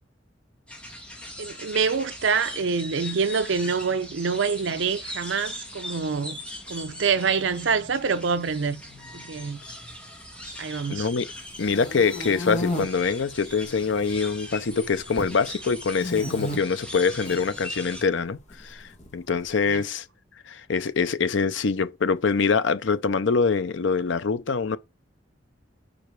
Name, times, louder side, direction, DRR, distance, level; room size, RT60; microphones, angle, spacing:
sound 1, 0.7-18.0, left 1 dB, 5° left, 1.6 m, -40 dB
voice 1, 1.4-6.4 6.7-8.8 9.1-9.6 10.6-11.1 19.7-19.8, right 5 dB, 80° right, 0.6 m, -26 dB
voice 2, 10.9-11.2 11.6-20.1 20.5-24.8, left 5 dB, 85° left, 0.6 m, -24 dB
sound 2, 11.4-12.8 13.5-14.1 14.4-15.4 16.0-16.6 17.1-17.4 18.5-19.4, left 1 dB, 40° left, 1.6 m, -32 dB
5.1 x 5.0 x 4.6 m
head